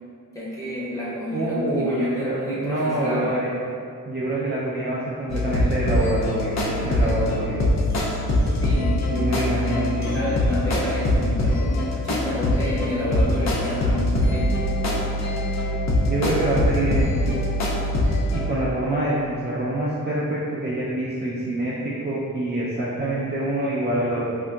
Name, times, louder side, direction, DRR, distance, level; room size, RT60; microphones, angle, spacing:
voice 1, 0.3-3.4 8.6-9.3 10.1-14.5, left 1 dB, 10° left, -8 dB, 0.8 m, -30 dB
voice 2, 1.3-3.5 4.1-7.6 9.1-10.2 16.0-17.4 18.3-24.4, right 1 dB, 30° right, -8 dB, 0.4 m, -26 dB
sound 1, 5.3-18.5, left 1 dB, 50° left, 0.5 m, -23 dB
3.8 x 2.6 x 2.2 m, 2.3 s
wide cardioid pair, 130°, 35 cm